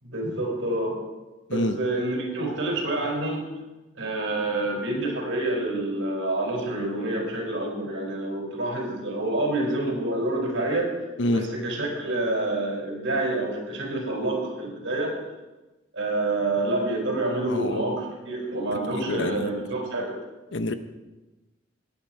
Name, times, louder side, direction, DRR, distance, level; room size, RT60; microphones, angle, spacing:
voice 1, 0.0-1.0 1.5-3.5 4.0-10.9 11.3-15.1 15.9-20.1, right 2 dB, 85° right, -1 dB, 4.7 m, -27 dB
voice 2, 17.4-17.8 19.0-19.5 20.5-20.7, left 2 dB, 75° left, 10 dB, 0.9 m, -27 dB
17.5 x 9.4 x 4.5 m, 1.1 s
head